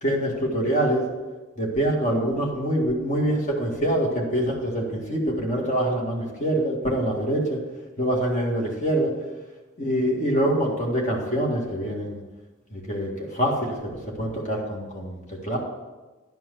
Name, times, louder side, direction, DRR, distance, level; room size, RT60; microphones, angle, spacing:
voice 1, 0.0-1.0 1.6-7.6 8.0-9.1 9.8-12.2 12.7-13.9 14.2-15.6, right 1 dB, 35° left, -1 dB, 1.9 m, -25 dB
11.0 x 4.6 x 7.5 m, 1.2 s
head